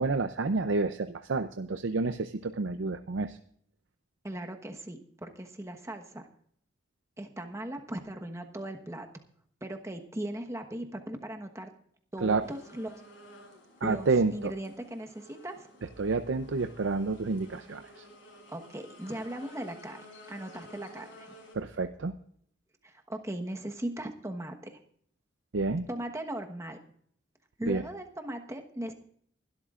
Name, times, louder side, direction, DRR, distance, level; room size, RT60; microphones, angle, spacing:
voice 1, 0.0-3.4 12.2-12.4 13.8-14.5 16.0-17.8 21.5-22.1 25.5-25.9 27.7-27.8, right 3 dB, 85° right, 9 dB, 0.6 m, -29 dB
voice 2, 4.2-6.3 7.2-9.1 9.6-11.7 12.1-13.0 13.8-15.7 18.5-21.3 22.8-24.8 25.9-26.8 27.6-28.9, right 1 dB, 15° right, 4 dB, 1.2 m, -38 dB
sound 1, 12.4-21.5, left 1 dB, 90° left, 6.8 m, -53 dB
22.0 x 12.5 x 2.5 m, 0.63 s
head